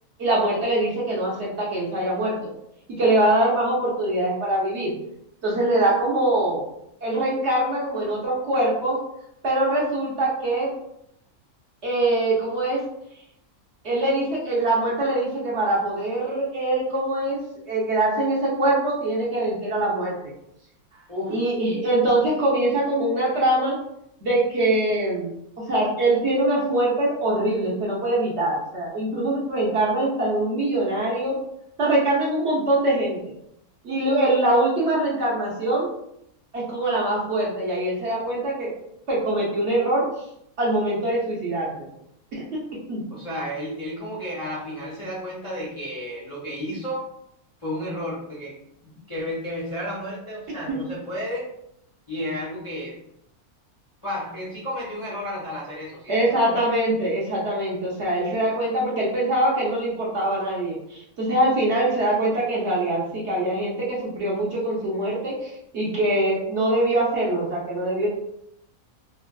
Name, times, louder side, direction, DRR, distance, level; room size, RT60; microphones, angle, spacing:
voice 1, 0.2-2.3 3.0-4.9 5.4-6.6 7.0-9.0 9.4-10.7 11.8-12.8 13.8-17.4 17.7-20.1 21.3-23.8 24.2-25.3 25.7-31.4 31.8-33.2 33.8-35.9 36.5-38.7 39.1-40.0 40.6-41.7 42.4-42.5 42.9-43.0 50.7-50.8 56.1-68.1, right 1 dB, 55° right, -5 dB, 0.9 m, -23 dB
voice 2, 20.9-21.4 43.1-47.1 47.6-51.5 52.1-53.0 54.0-56.6, equal, 35° left, -8 dB, 0.5 m, -32 dB
3.3 x 2.3 x 2.2 m, 0.77 s
omnidirectional pair, 1.6 m